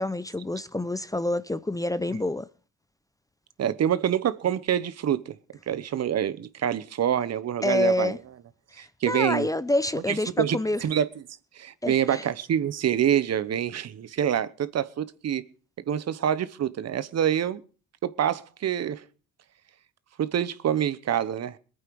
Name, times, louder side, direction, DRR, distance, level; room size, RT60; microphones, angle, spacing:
voice 1, 0.0-2.5 7.6-8.2 8.8-10.8 11.8-12.2, left 1 dB, 10° left, 0.6 m, -27 dB
voice 2, 3.6-5.3 5.7-8.1 8.8-9.5 10.1-11.1 11.6-15.4 15.9-17.6 18.0-19.0 20.2-21.6, right 9 dB, 60° right, 1.1 m, -26 dB
21.5 x 9.1 x 4.7 m
cardioid pair, 90°, 30 cm